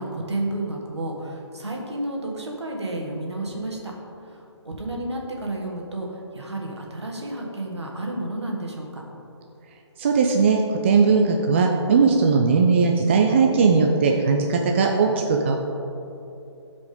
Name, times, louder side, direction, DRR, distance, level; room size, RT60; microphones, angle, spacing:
voice 1, 0.0-3.8 4.3-9.0, right 1 dB, 70° right, -1 dB, 1.8 m, -31 dB
voice 2, 10.0-15.6, right 4 dB, 25° right, 2 dB, 0.4 m, -19 dB
15.0 x 5.0 x 3.8 m, 2.8 s
figure-of-eight pair, 140°, 15 cm